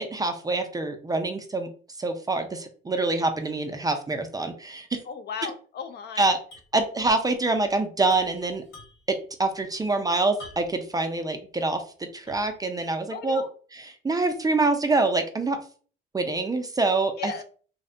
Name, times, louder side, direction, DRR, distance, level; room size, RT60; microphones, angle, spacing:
voice 1, 0.0-1.7 2.0-5.0 6.2-6.4 6.7-8.6 9.1-13.4 14.0-15.6 16.1-17.4, right 3 dB, 20° right, 6 dB, 0.4 m, -25 dB
voice 2, 5.1-6.3 13.1-13.5 17.2-17.4, left 6 dB, 55° left, 9 dB, 0.4 m, -35 dB
sound 1, 6.5-6.8 7.0-7.1 8.0-9.2 10.4-10.9 11.4-11.5 12.3-12.6, left 1 dB, 90° left, 1.4 m, -47 dB
2.6 x 2.1 x 2.5 m, 0.42 s
cardioid pair, 90°, 20 cm